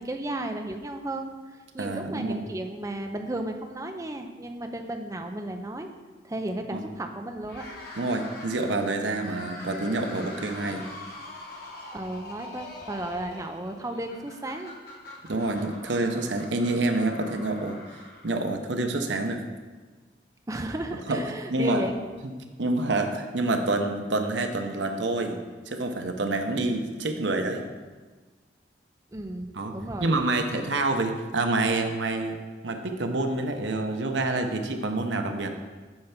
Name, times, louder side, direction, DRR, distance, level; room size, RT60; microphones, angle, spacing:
voice 1, 0.0-5.9 6.2-7.7 11.9-14.7 20.5-21.9 29.1-30.1, right 1 dB, 20° right, 5 dB, 0.5 m, -34 dB
voice 2, 1.8-2.5 6.7-6.9 8.0-10.9 15.3-19.4 21.1-21.2 21.5-21.9 22.6-27.7 29.5-29.7 30.0-32.4 32.6-35.5, right 2 dB, 80° right, 5 dB, 0.8 m, -27 dB
sound 1, 7.4-18.7, left 1 dB, 55° left, 1.5 m, -43 dB
8.7 x 3.4 x 5.8 m, 1.3 s
head